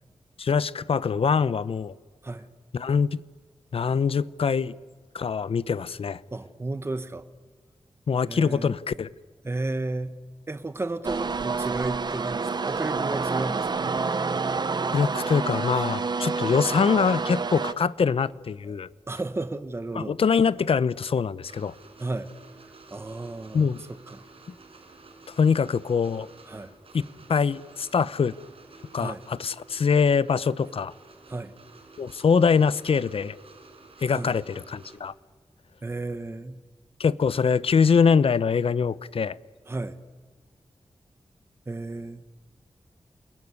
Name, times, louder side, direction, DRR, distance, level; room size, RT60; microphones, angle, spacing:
voice 1, 0.4-1.9 2.7-3.2 3.7-4.7 5.1-6.2 8.1-9.1 14.9-18.9 19.9-21.7 23.5-23.8 25.3-26.3 26.9-27.0 27.3-28.3 28.9-30.9 32.0-33.4 34.0-35.1 37.0-39.4, left 6 dB, 70° left, 18 dB, 0.7 m, -23 dB
voice 2, 6.3-7.3 8.3-8.7 9.4-10.1 10.5-13.9 18.7-18.8 19.1-20.2 22.0-22.3 22.9-24.2 26.5-26.7 29.0-29.2 31.3-31.5 34.1-34.3 35.8-36.6 39.7-40.0 41.7-42.3, right 2 dB, 25° right, 11 dB, 1.1 m, -33 dB
sound 1, 11.0-17.7, right 4 dB, 45° right, 0.9 m, -28 dB
sound 2, 21.4-35.0, right 3 dB, 70° right, 5.4 m, -51 dB
28.5 x 21.0 x 9.6 m, 1.5 s
wide cardioid pair, 125°, 10 cm